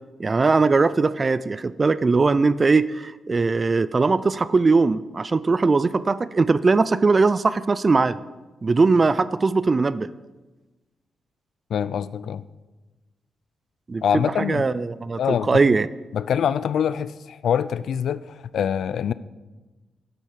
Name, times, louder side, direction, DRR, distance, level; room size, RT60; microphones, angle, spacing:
voice 1, 0.2-8.2 8.6-10.1 13.9-15.2 15.5-15.9, right 4 dB, 30° right, 16 dB, 0.3 m, -20 dB
voice 2, 11.7-12.4 14.0-14.7 15.2-15.6 16.1-19.1, left 8 dB, 70° left, 16 dB, 0.4 m, -24 dB
10.5 x 8.2 x 5.8 m, 1.2 s
wide cardioid pair, 135°, 0 cm